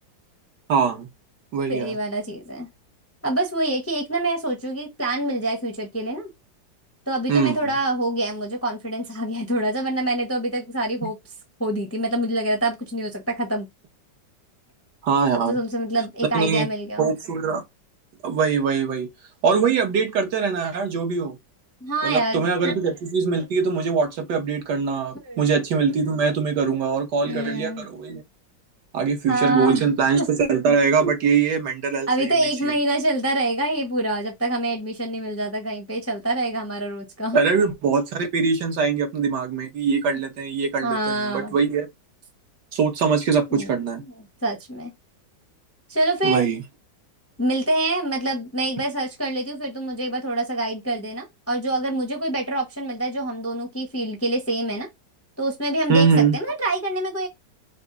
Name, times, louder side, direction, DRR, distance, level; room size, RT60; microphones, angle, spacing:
voice 1, 0.7-1.1 1.5-1.9 7.3-7.7 15.0-15.6 16.3-16.7 17.0-17.6 18.2-19.1 19.4-21.4 22.0-28.2 28.9-32.4 32.6-32.7 37.3-41.9 42.7-44.0 46.2-46.6 55.9-56.4, right 5 dB, 70° right, 1.6 m, -22 dB
voice 2, 1.7-2.7 3.2-6.3 7.1-11.2 11.6-13.7 15.5-17.1 21.8-22.8 25.2-25.5 27.3-27.9 29.3-30.3 32.1-37.4 40.8-41.5 43.5-43.7 44.0-44.1 44.4-44.9 45.9-46.5 47.4-54.9 55.4-57.3, right 1 dB, 15° left, 0.6 m, -26 dB
5.9 x 2.0 x 3.8 m
omnidirectional pair, 2.0 m